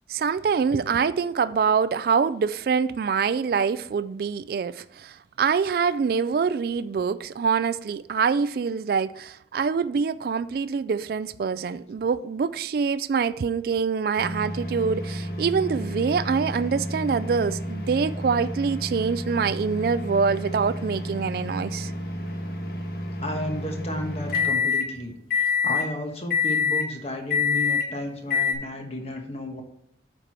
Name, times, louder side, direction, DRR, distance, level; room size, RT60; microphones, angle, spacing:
voice 1, 0.1-21.9, right 5 dB, 55° right, 0.3 m, -25 dB
sound 1, 14.2-24.9 25.3-25.9 26.3-26.9 27.3-27.9 28.3-28.5, left 4 dB, 55° left, 1.4 m, -28 dB
voice 2, 23.2-29.6, left 1 dB, 35° left, 1.2 m, -33 dB
9.1 x 4.5 x 4.7 m
head